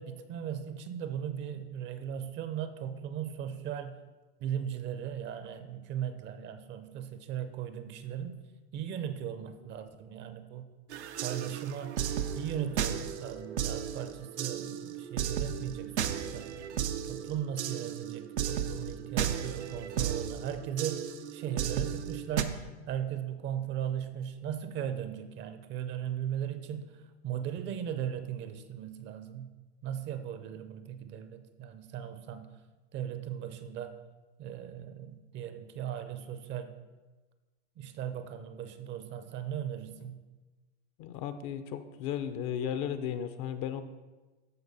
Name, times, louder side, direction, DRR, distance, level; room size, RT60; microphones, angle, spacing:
voice 1, 0.0-4.0 4.4-8.4 8.7-10.7 11.2-12.0 12.3-16.5 17.1-22.5 22.9-27.0 27.2-29.5 29.8-32.5 32.9-34.0 34.4-36.7 37.8-40.2, right 9 dB, 35° right, 10 dB, 0.6 m, -37 dB
sound 1, 10.9-22.4, right 9 dB, 80° right, 0.8 m, -34 dB
voice 2, 41.0-43.8, left 9 dB, 45° left, 11 dB, 0.7 m, -35 dB
13.5 x 4.8 x 4.1 m, 1.2 s
hypercardioid pair, 115°, 33 cm